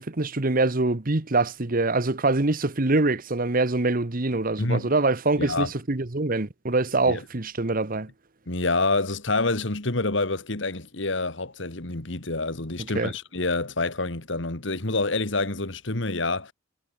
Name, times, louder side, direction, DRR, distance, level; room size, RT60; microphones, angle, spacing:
voice 1, 0.0-8.1 12.9-13.1, right 2 dB, 45° right, 1.3 m, -24 dB
voice 2, 5.4-5.7 7.1-7.2 8.5-16.5, left 3 dB, 65° left, 2.3 m, -27 dB
head